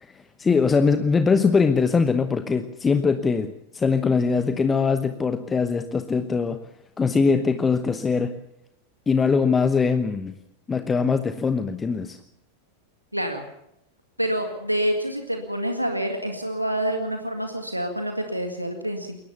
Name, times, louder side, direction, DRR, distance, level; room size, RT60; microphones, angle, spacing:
voice 1, 0.4-6.6 7.0-8.3 9.1-10.4 10.7-12.2, left 5 dB, 15° left, 11 dB, 1.0 m, -22 dB
voice 2, 13.1-13.4 14.2-19.2, equal, 90° right, 5 dB, 2.0 m, -27 dB
22.0 x 18.0 x 7.0 m, 0.79 s
figure-of-eight pair, 90°, 0 cm